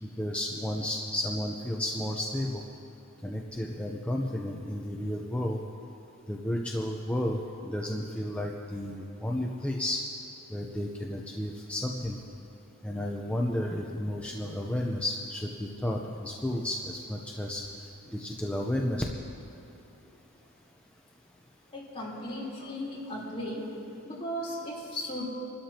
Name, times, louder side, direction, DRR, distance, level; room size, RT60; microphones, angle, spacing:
voice 1, 0.0-2.6 3.2-5.6 6.3-10.0 10.5-12.2 12.8-19.0, left 1 dB, 5° left, -1 dB, 0.8 m, -32 dB
voice 2, 21.7-23.7 24.0-25.3, left 1 dB, 30° left, -5 dB, 3.9 m, -36 dB
28.0 x 13.0 x 3.0 m, 2.9 s
head